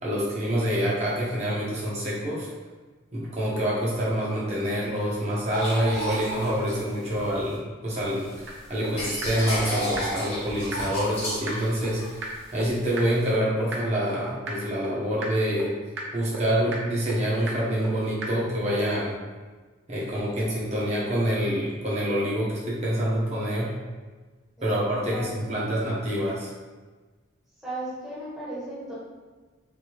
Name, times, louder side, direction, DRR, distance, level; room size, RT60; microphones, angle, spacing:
voice 1, 0.0-2.5 3.1-8.3 8.7-12.0 12.5-15.7 16.1-19.1 19.9-23.7 24.6-26.5, equal, 30° right, -6 dB, 0.9 m, -26 dB
sound 1, 5.5-7.6 8.0-13.3, equal, 30° left, 0.9 m, -33 dB
sound 2, 8.5-8.6 8.8-8.9 9.2-9.3 9.6-9.7 10.0-10.1 10.3-10.4 10.7-10.8 11.1-11.2 11.5-11.6 11.8-11.9 12.2-12.3 12.6-12.7 13.0-13.1 13.3-13.4 13.7-13.8 14.1-14.2 14.5-14.6 14.8-14.9 15.2-15.3 15.6-15.7 16.0-16.1 16.3-16.4 16.7-16.8 17.1-17.2 17.5-17.6 17.8-17.9 18.2-18.3, right 3 dB, 60° right, 0.6 m, -33 dB
voice 2, 25.1-25.7 27.6-28.9, right 1 dB, ahead, -11 dB, 1.0 m, -36 dB
3.4 x 2.7 x 3.0 m, 1.3 s
head